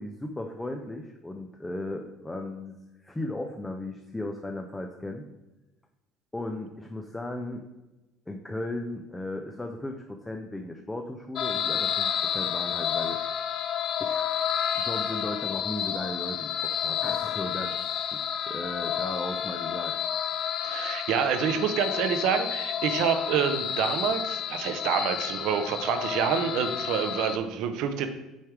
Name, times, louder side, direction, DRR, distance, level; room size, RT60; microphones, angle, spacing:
voice 1, 0.0-5.3 6.3-7.6 8.3-13.2 14.0-14.4 14.8-17.8 18.0-19.9, left 1 dB, 10° left, 3 dB, 0.6 m, -36 dB
sound 1, 11.4-27.4, left 9 dB, 55° left, 0.4 m, -30 dB
voice 2, 20.6-28.1, right 7 dB, 70° right, 8 dB, 0.7 m, -27 dB
6.3 x 3.5 x 4.7 m, 1.0 s
supercardioid pair, 95°, 0 cm